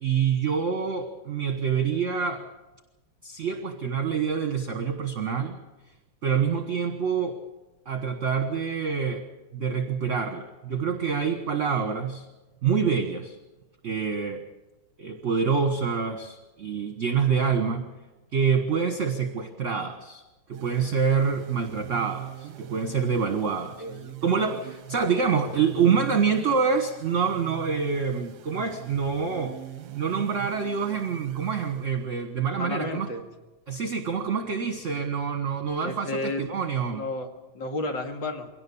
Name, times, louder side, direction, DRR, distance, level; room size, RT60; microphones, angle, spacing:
voice 1, 0.0-2.4 3.2-5.6 6.2-7.4 7.8-9.2 9.5-12.3 12.6-13.4 13.8-14.4 15.0-17.9 18.3-20.2 20.5-23.8 24.2-29.6 29.9-33.1 33.7-37.0, right 6 dB, 40° right, 6 dB, 1.5 m, -26 dB
sound 1, 20.5-32.3, right 15 dB, 60° right, 1.3 m, -41 dB
voice 2, 23.8-24.2 32.5-33.2 35.8-36.5 36.9-37.3 37.5-38.5, left 2 dB, 60° left, 4 dB, 2.7 m, -32 dB
22.5 x 18.0 x 7.1 m, 1.1 s
omnidirectional pair, 2.3 m